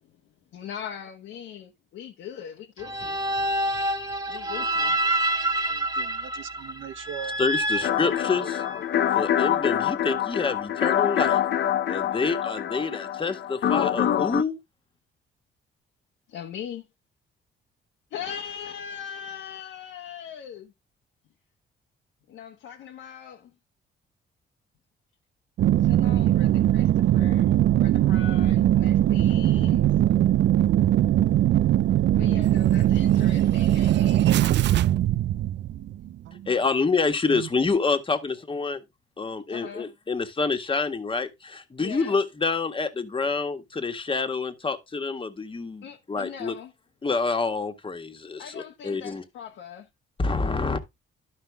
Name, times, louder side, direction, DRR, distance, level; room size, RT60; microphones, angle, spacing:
voice 1, 0.5-3.2 4.3-5.0 5.4-5.7 16.3-16.9 18.1-20.7 22.3-23.5 25.8-27.5 27.8-29.9 32.1-34.3 39.5-39.9 41.8-42.2 45.8-46.7 48.4-49.9, left 8 dB, 80° left, 1.3 m, -40 dB
sound 1, 2.8-8.8, right 1 dB, 15° right, 1.6 m, -27 dB
voice 2, 5.7-7.4 7.7-7.8 28.6-28.9 36.3-36.4 37.3-37.5, right 10 dB, 80° right, 1.1 m, -39 dB
voice 3, 7.4-8.6 9.1-11.4 11.9-14.6 36.5-38.8 39.2-46.5 47.0-49.2 50.2-50.8, left 4 dB, 25° left, 1.6 m, -27 dB
sound 2, 7.8-14.4, left 10 dB, 60° left, 0.8 m, -25 dB
sound 3, 25.6-36.1 36.5-36.6, right 12 dB, 65° right, 0.5 m, -20 dB
12.0 x 5.5 x 3.4 m
cardioid pair, 90°, 20 cm